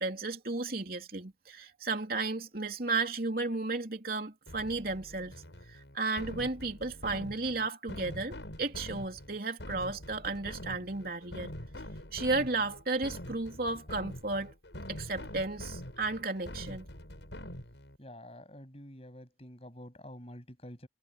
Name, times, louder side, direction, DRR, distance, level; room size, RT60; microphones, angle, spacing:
voice 1, 0.0-5.3 5.7-11.5 12.1-14.5 14.9-16.9, right 3 dB, 55° right, 3.3 m, -34 dB
sound 1, 4.5-18.0, left 1 dB, 85° left, 7.2 m, -45 dB
voice 2, 18.0-20.9, left 1 dB, 35° left, 7.5 m, -48 dB
head